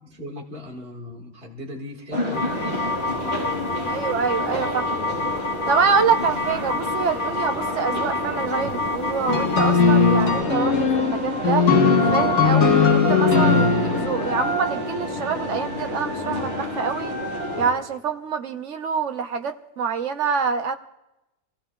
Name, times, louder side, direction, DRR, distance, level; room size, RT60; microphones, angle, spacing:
voice 1, 0.0-4.0, left 1 dB, 40° right, 0 dB, 2.0 m, -39 dB
sound 1, 2.1-17.7, equal, 25° right, 5.9 m, -29 dB
sound 2, 2.3-10.4, left 2 dB, 40° left, 1.2 m, -29 dB
voice 2, 3.9-5.0 5.7-11.6 12.1-17.2 17.6-20.8, right 6 dB, 60° right, 7 dB, 1.1 m, -26 dB
sound 3, 9.3-14.7, left 6 dB, 65° left, 1.5 m, -19 dB
27.5 x 16.5 x 2.3 m, 0.93 s
omnidirectional pair, 1.5 m